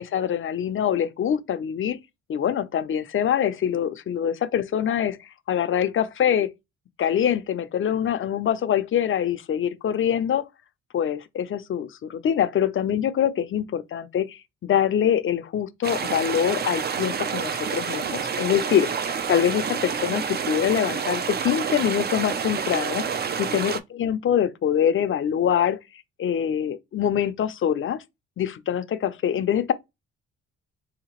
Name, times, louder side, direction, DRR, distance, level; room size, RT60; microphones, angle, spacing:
voice 1, 0.0-2.0 2.3-5.2 5.5-6.5 7.0-10.4 10.9-23.1 23.4-25.8 26.2-28.0 28.4-29.7, left 9 dB, 45° left, 0.5 m, -24 dB
sound 1, 15.8-23.8, right 6 dB, 35° right, 0.5 m, -28 dB
3.5 x 2.8 x 2.9 m
cardioid pair, 90°, 30 cm